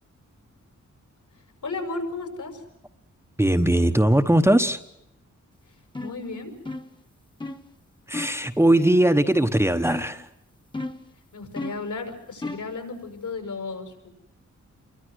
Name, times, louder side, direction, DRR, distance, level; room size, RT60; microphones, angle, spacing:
voice 1, 1.6-2.6 6.0-6.5 11.3-14.1, left 3 dB, 75° left, 5 dB, 6.6 m, -34 dB
voice 2, 3.4-4.8 8.1-10.3, right 1 dB, 10° right, 7 dB, 1.1 m, -20 dB
sound 1, 6.0-6.2 6.7-7.0 7.4-7.7 8.1-8.5 9.8-10.2 10.7-11.1 11.6-11.9 12.4-12.7, left 2 dB, 15° left, 1.4 m, -34 dB
29.0 x 23.0 x 6.4 m, 0.79 s
wide cardioid pair, 170°, 30 cm